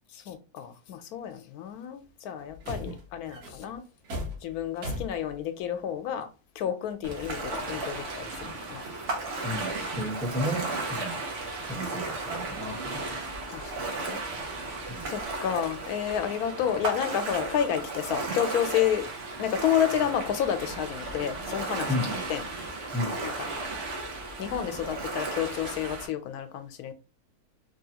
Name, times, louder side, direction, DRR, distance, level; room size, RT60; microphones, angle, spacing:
voice 1, 0.1-3.8 4.4-6.3 6.6-8.8 11.7-11.8 13.5-14.2 15.1-19.1 19.4-22.0 22.3-22.4 23.2-23.3 24.4-26.9, left 9 dB, 80° left, 1.1 m, -30 dB
sound 1, 2.0-2.1 2.4-5.9 6.9-7.0 7.5-9.0 9.3-11.0 11.4-11.6 12.7-13.3, left 1 dB, 80° right, 1.5 m, -41 dB
Ocean, 7.0-26.1, right 3 dB, 60° right, 1.0 m, -35 dB
voice 2, 9.4-11.2 11.6-13.2 14.9-15.1 21.9-22.2 22.9-23.2, left 1 dB, 5° left, 0.7 m, -33 dB
3.3 x 2.3 x 2.8 m
omnidirectional pair, 1.6 m